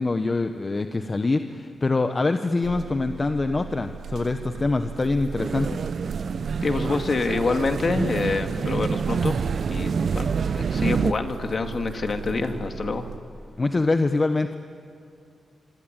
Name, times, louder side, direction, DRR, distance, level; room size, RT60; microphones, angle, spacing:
voice 1, 0.0-5.8 13.6-14.6, left 3 dB, 30° left, 7 dB, 1.1 m, -24 dB
sound 1, 2.6-13.2, right 7 dB, 85° right, 3.0 m, -38 dB
sound 2, 5.4-11.1, right 6 dB, 60° right, 0.7 m, -27 dB
voice 2, 6.6-9.4 9.7-13.1, left 3 dB, 45° left, 6 dB, 2.2 m, -26 dB
25.5 x 25.5 x 9.1 m, 2.5 s
cardioid pair, 85°, 0 cm